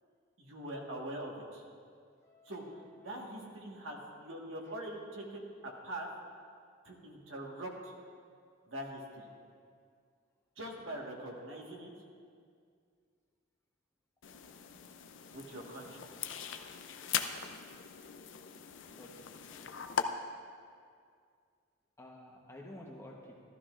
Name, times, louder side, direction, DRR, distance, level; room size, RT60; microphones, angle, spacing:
voice 1, 0.4-1.6 2.4-2.6 3.0-6.1 6.8-7.9 8.7-9.3 10.6-11.9 15.3-16.1, right 1 dB, 75° right, -1 dB, 1.5 m, -43 dB
voice 2, 2.2-2.9 3.3-3.5 4.6-4.8 19.0-19.2 19.5-19.6 22.0-23.4, left 1 dB, 15° left, -1 dB, 1.0 m, -52 dB
sound 1, 14.2-20.0, left 8 dB, 65° left, 0.5 m, -40 dB
14.5 x 13.0 x 2.5 m, 2.2 s
head